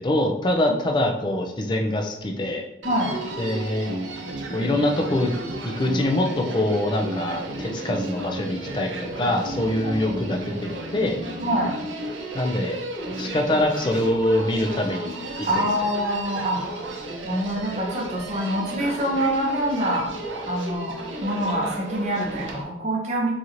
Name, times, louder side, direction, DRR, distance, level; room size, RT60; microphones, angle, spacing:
voice 1, 0.0-2.6 3.4-3.9 4.5-5.3 5.6-10.5 10.9-11.2 12.3-12.8 13.2-15.3 15.6-15.7, left 1 dB, 25° left, 3 dB, 0.4 m, -24 dB
Human voice, 2.8-22.6, right 2 dB, 85° right, 0.6 m, -33 dB
voice 2, 11.4-11.7 15.4-16.6 17.2-20.1 20.5-20.9 21.2-23.4, equal, 35° right, -2 dB, 0.8 m, -25 dB
4.0 x 3.0 x 2.5 m, 0.89 s
head